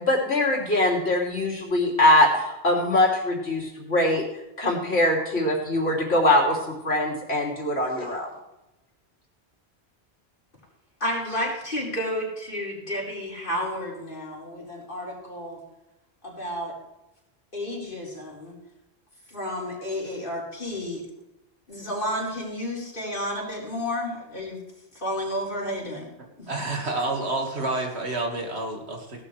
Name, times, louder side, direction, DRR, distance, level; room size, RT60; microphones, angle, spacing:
voice 1, 0.1-4.2 4.6-8.3, left 1 dB, 80° left, -2 dB, 3.5 m, -22 dB
voice 2, 11.0-15.6 16.2-16.7 17.5-18.6 19.3-21.0 21.7-24.6 24.9-26.1 26.4-26.5, left 1 dB, 55° left, -4 dB, 4.8 m, -31 dB
voice 3, 26.5-29.2, right 2 dB, 80° right, 1 dB, 2.4 m, -29 dB
17.5 x 12.0 x 3.4 m, 0.90 s
omnidirectional pair, 1.1 m